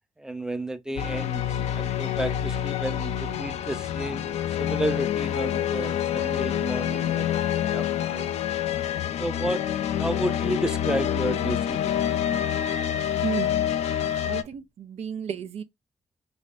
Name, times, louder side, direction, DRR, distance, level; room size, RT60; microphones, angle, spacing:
voice 1, 0.2-7.3 7.7-8.3 9.2-9.6 10.0-12.0, right 1 dB, 5° right, 0.5 m, -32 dB
sound 1, 1.0-14.4, left 10 dB, 80° left, 0.4 m, -27 dB
voice 2, 14.3-15.6, right 7 dB, 75° right, 0.5 m, -32 dB
3.4 x 3.2 x 2.5 m
cardioid pair, 75°, 11 cm